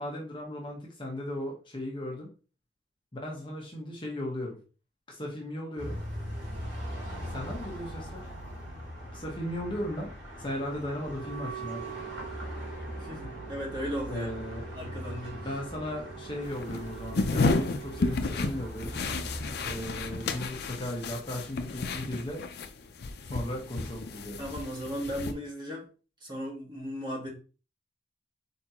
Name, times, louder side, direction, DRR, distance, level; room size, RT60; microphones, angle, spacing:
voice 1, 0.0-2.3 3.1-4.6 5.1-6.0 7.3-8.3 9.1-10.1 10.4-11.9 14.1-14.7 15.4-19.0 19.6-22.4 23.2-24.4, left 1 dB, 25° left, -2 dB, 1.1 m, -36 dB
sound 1, 5.8-20.4, equal, 75° right, 2.5 m, -41 dB
Wind instrument woodwind instrument, 11.0-18.1, right 12 dB, 5° left, 1.3 m, -45 dB
voice 2, 13.0-14.3 14.7-15.4 24.4-25.9 26.2-27.3, equal, 25° right, -2 dB, 1.6 m, -36 dB
sound 2, 16.4-22.7 23.0-25.3, left 3 dB, 60° left, 0.5 m, -32 dB
4.4 x 4.2 x 2.9 m, 0.37 s
head